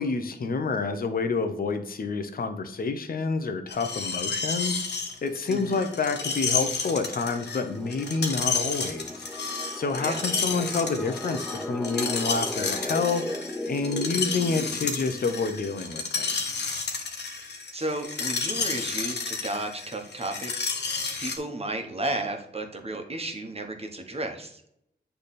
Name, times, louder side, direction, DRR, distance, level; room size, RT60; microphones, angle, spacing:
voice 1, 0.0-9.2 9.7-16.4, left 4 dB, 55° left, 7 dB, 0.8 m, -28 dB
Screech, 3.7-21.4, left 5 dB, 70° left, 1.1 m, -31 dB
sound 1, 5.4-15.9, left 1 dB, 5° left, 0.6 m, -38 dB
voice 2, 5.5-5.8 10.0-10.2 17.7-20.7 21.2-24.6, right 2 dB, 35° right, 4 dB, 1.2 m, -33 dB
8.2 x 3.4 x 4.2 m, 0.76 s
cardioid pair, 65°, 18 cm